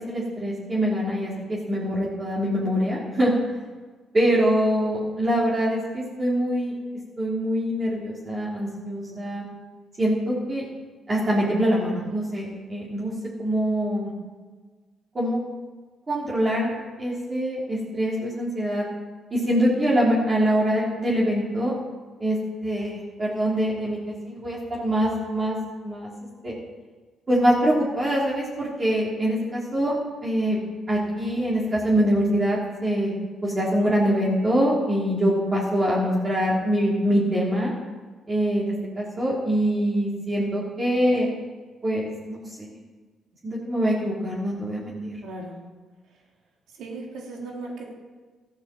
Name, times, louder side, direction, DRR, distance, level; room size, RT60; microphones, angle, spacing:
voice 1, 0.0-3.3 4.1-6.7 7.2-9.4 10.0-10.7 11.1-14.1 15.2-15.4 16.1-16.7 17.0-18.9 19.3-21.7 22.2-25.6 25.8-26.1 26.4-26.5 27.3-30.0 30.2-30.6 30.9-33.1 33.4-37.7 38.3-41.3 41.8-42.7 43.4-45.2, equal, 30° right, -5 dB, 3.5 m, -24 dB
voice 2, 45.2-45.6 46.8-47.9, right 2 dB, 80° right, -1 dB, 3.4 m, -37 dB
14.0 x 8.8 x 7.7 m, 1.4 s
cardioid pair, 90°, 0 cm